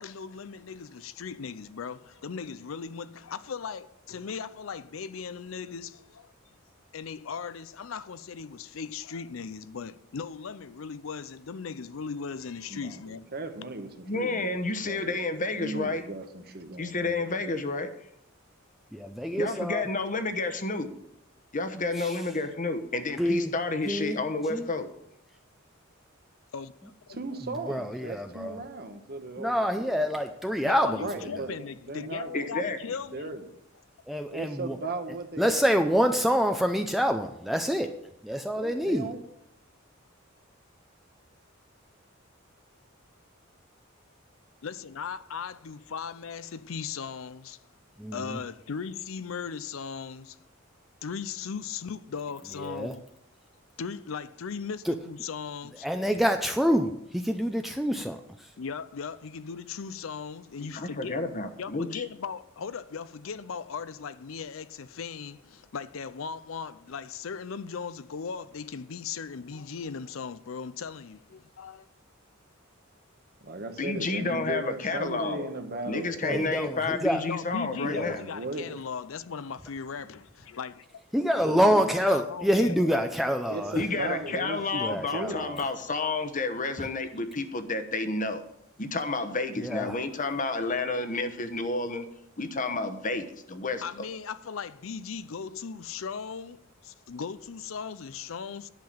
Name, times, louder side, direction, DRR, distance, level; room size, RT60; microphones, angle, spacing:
voice 1, 0.0-6.3 6.9-13.3 16.8-16.9 26.5-27.2 28.4-28.6 30.6-33.3 44.6-47.6 48.1-50.4 51.0-53.1 53.8-55.9 58.6-61.2 61.6-71.9 77.3-80.8 82.1-83.1 93.8-98.7, left 6 dB, 75° left, 0.5 m, -38 dB
voice 2, 12.7-14.6 14.8-15.2 15.6-17.6 27.1-30.0 30.9-32.5 33.1-33.4 34.3-36.4 38.5-39.2 73.4-76.6 78.0-78.7 81.4-81.9 83.5-85.4, right 2 dB, 50° right, 1.3 m, -37 dB
voice 3, 14.1-16.0 16.8-17.9 19.4-20.9 21.5-24.9 32.3-32.8 60.6-62.0 73.8-75.5 75.9-78.2 83.7-88.4 88.8-92.0 92.4-94.1, left 3 dB, 40° left, 1.1 m, -30 dB
voice 4, 18.9-19.8 22.0-22.2 23.2-23.5 23.9-24.2 24.5-24.7 27.7-28.6 29.4-31.1 34.1-34.8 35.4-37.9 38.2-39.1 48.0-48.4 52.6-52.9 54.8-54.9 55.8-58.2 76.2-77.2 77.8-78.1 81.1-83.8 84.8-85.6 89.6-90.0, equal, ahead, 0.5 m, -26 dB
10.5 x 5.8 x 8.7 m
head